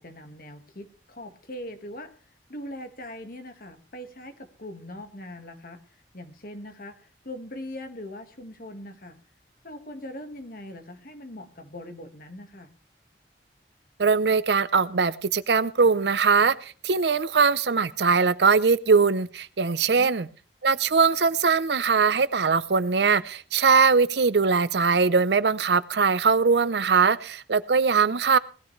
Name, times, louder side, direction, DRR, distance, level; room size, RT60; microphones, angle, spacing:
voice 1, 0.0-2.1 2.5-5.8 6.1-9.2 9.6-12.7 19.9-20.1, left 1 dB, 55° left, 8 dB, 1.7 m, -41 dB
voice 2, 14.0-20.3 20.6-28.4, right 5 dB, 70° right, 16 dB, 0.7 m, -21 dB
19.0 x 12.5 x 3.2 m, 0.39 s
head